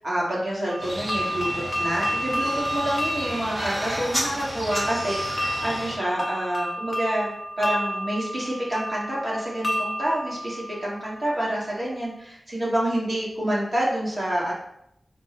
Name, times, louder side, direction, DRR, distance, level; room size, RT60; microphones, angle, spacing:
voice 1, 0.0-7.3 7.6-14.5, right 1 dB, 35° right, -6 dB, 1.5 m, -28 dB
sound 1, 0.7-11.5, equal, 25° left, 0.5 m, -31 dB
sound 2, 0.8-6.0, equal, 15° right, 0.8 m, -32 dB
4.5 x 2.1 x 4.0 m, 0.75 s
wide cardioid pair, 105°, 0 cm